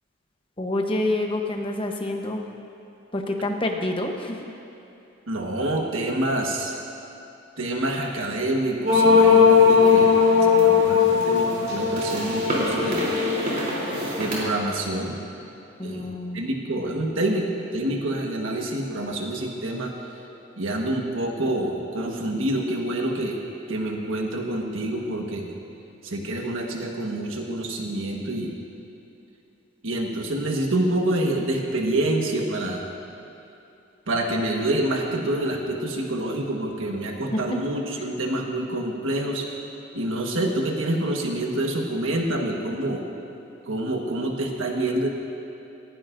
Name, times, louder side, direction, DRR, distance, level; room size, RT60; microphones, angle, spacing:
voice 1, 0.6-2.5 3.1-4.4 10.3-11.1 15.8-16.5 37.3-37.6, left 1 dB, 25° left, 3 dB, 1.0 m, -28 dB
voice 2, 5.3-6.7 7.6-10.1 10.6-13.0 14.2-15.2 15.8-16.1 16.3-19.9 20.6-23.4 23.7-25.5 26.0-28.5 29.8-32.9 34.1-39.5 39.9-43.0 43.7-45.1, right 1 dB, 85° right, 1 dB, 1.4 m, -27 dB
sound 1, 8.9-14.3, left 5 dB, 45° right, 3.4 m, -18 dB
19.0 x 16.0 x 2.6 m, 2.8 s
head